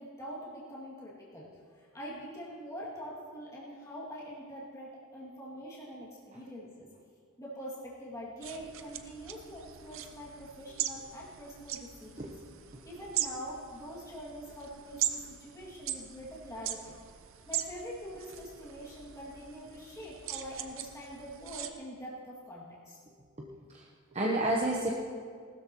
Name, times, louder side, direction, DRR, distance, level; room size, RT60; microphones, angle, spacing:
voice 1, 0.0-6.9 7.4-12.3 12.8-16.9 17.5-23.0, equal, 15° left, -7 dB, 2.3 m, -44 dB
sound 1, 8.4-21.7, right 11 dB, 65° right, 0.7 m, -40 dB
voice 2, 23.4-23.8 24.1-24.9, right 1 dB, 30° right, -2 dB, 0.9 m, -30 dB
19.5 x 13.0 x 3.0 m, 2.1 s
head